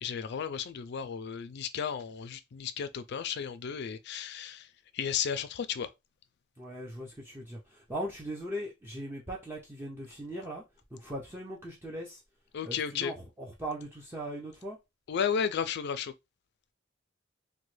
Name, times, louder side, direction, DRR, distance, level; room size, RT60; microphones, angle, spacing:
voice 1, 0.0-4.7 4.9-5.9 12.5-13.1 15.1-16.1, left 7 dB, 55° left, 0.4 m, -33 dB
voice 2, 6.6-10.6 10.9-12.2 12.6-14.8, right 1 dB, 10° right, 0.5 m, -39 dB
3.0 x 2.1 x 3.1 m
head